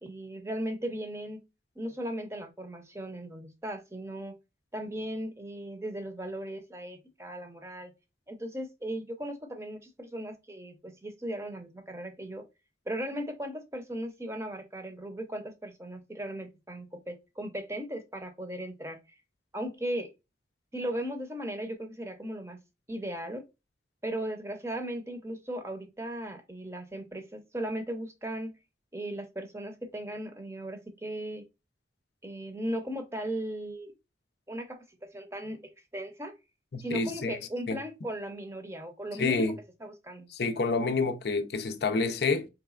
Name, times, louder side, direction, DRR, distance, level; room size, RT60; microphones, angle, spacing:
voice 1, 0.0-1.4 1.8-4.3 4.7-7.9 8.3-12.4 12.9-19.0 19.5-20.1 20.7-22.6 22.9-23.5 24.0-28.6 28.9-31.4 32.2-33.9 34.5-36.3 36.8-39.5 39.8-40.3, right 1 dB, 15° right, 0.6 m, -37 dB
voice 2, 36.7-37.4 37.7-37.8 39.2-39.6 40.3-42.5, left 4 dB, 65° left, 0.6 m, -28 dB
4.1 x 3.3 x 2.4 m
head